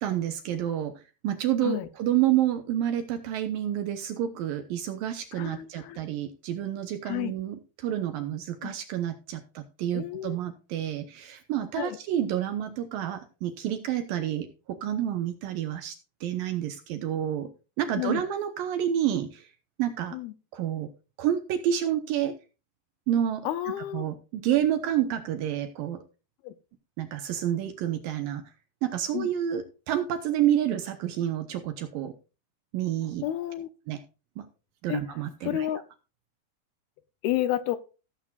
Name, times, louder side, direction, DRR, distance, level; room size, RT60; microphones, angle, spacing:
voice 1, 0.0-15.9 16.2-17.5 17.8-19.5 19.8-20.2 20.5-20.9 21.2-22.4 23.1-23.5 23.9-26.0 27.0-28.4 28.8-32.1 32.7-33.2 33.9-34.0 34.4-34.5 34.8-35.7, right 11 dB, 70° right, 7 dB, 2.3 m, -29 dB
voice 2, 5.3-6.0 7.1-7.3 8.6-8.7 9.9-10.4 11.8-12.0 18.0-18.2 20.1-20.3 23.5-24.1 26.4-26.5 29.1-29.3 33.2-33.7 34.9-35.0 35.4-35.8 37.2-37.8, left 13 dB, 80° left, 12 dB, 2.4 m, -30 dB
16.0 x 7.9 x 2.4 m, 0.31 s
omnidirectional pair, 4.8 m